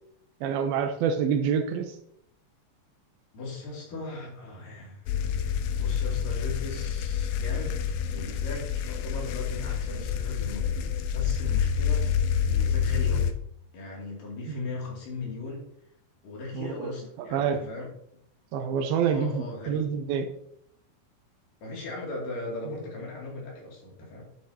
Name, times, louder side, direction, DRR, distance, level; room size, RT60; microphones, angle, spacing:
voice 1, 0.4-1.9 14.5-14.6 16.5-16.9 17.3-17.7 18.5-20.3, right 7 dB, 75° right, 7 dB, 2.6 m, -27 dB
voice 2, 3.3-5.0 5.7-7.8 8.1-12.1 12.4-13.3 13.7-15.7 16.2-17.9 19.1-19.8 21.6-24.3, left 3 dB, 60° left, -2 dB, 4.2 m, -38 dB
sound 1, 5.1-13.3, left 8 dB, 80° left, 2.5 m, -28 dB
10.5 x 7.9 x 2.8 m, 0.70 s
omnidirectional pair, 4.4 m